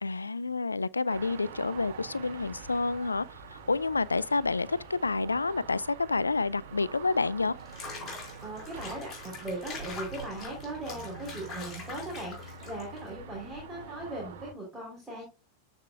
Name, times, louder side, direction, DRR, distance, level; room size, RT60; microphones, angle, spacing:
voice 1, 0.0-3.3 3.5-7.6, left 3 dB, 80° left, 0.3 m, -29 dB
sound 1, 1.1-14.5, right 4 dB, 55° right, 2.2 m, -45 dB
Water / Bathtub (filling or washing), 7.6-13.1, left 3 dB, 25° left, 4.8 m, -43 dB
voice 2, 8.4-15.2, right 2 dB, 10° right, 3.5 m, -39 dB
14.0 x 4.9 x 2.3 m
figure-of-eight pair, 90°, 0 cm